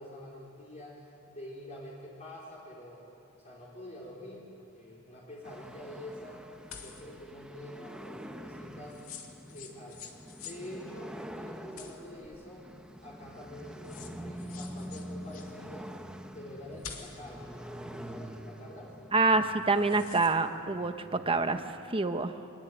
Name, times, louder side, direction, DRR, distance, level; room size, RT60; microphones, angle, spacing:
voice 1, 0.0-3.1 3.4-6.4 6.7-9.2 9.5-10.0 10.4-12.7 13.0-15.9 16.3-18.9, left 1 dB, 35° left, -6 dB, 4.2 m, -46 dB
sound 1, 5.4-21.7, equal, 5° right, 1.1 m, -46 dB
sound 2, 6.7-7.1 8.9-10.6 11.8-12.5 13.5-13.6 13.8-15.5 16.8-17.3 19.6-20.3, left 7 dB, 80° left, 2.6 m, -47 dB
voice 2, 19.1-21.6 21.9-22.3, right 3 dB, 25° right, 8 dB, 1.2 m, -26 dB
24.0 x 21.0 x 9.3 m, 2.6 s
head